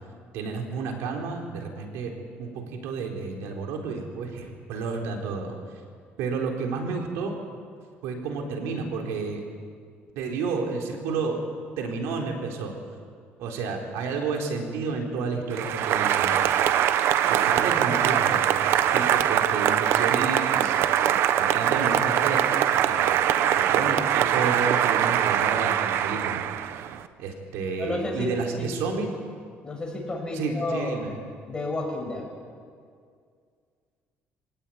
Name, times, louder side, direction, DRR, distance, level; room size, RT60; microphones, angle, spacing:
voice 1, 0.3-2.1 2.4-5.6 6.2-7.3 8.0-9.4 10.2-11.4 11.8-12.8 13.4-16.4 17.3-20.7 21.4-22.4 22.7-23.2 23.5-26.4 27.2-29.1 30.3-31.1, right 4 dB, 90° right, 2 dB, 4.1 m, -31 dB
Applause, 15.5-27.0, right 10 dB, 65° right, 1.1 m, -23 dB
voice 2, 27.8-28.3 28.6-28.7 29.6-30.9 31.5-32.2, left 2 dB, 20° left, 1 dB, 6.0 m, -31 dB
26.0 x 18.0 x 9.4 m, 2.1 s
cardioid pair, 140°, 4 cm